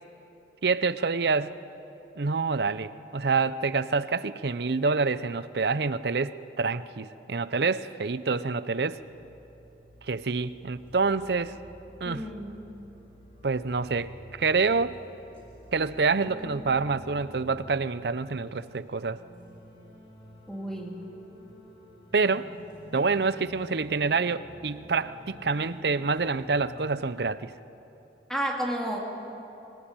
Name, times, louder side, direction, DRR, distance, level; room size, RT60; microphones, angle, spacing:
voice 1, 0.6-1.6 2.2-9.0 10.0-11.5 12.0-12.3 13.4-15.0 15.7-19.2 22.1-22.5 22.9-27.5, right 4 dB, 65° right, 14 dB, 0.7 m, -27 dB
sound 1, 8.7-27.2, equal, 30° left, 4.7 m, -49 dB
voice 2, 12.0-12.6 20.5-21.0 28.3-29.0, right 1 dB, 5° left, 0 dB, 2.6 m, -31 dB
24.0 x 19.5 x 9.0 m, 2.9 s
head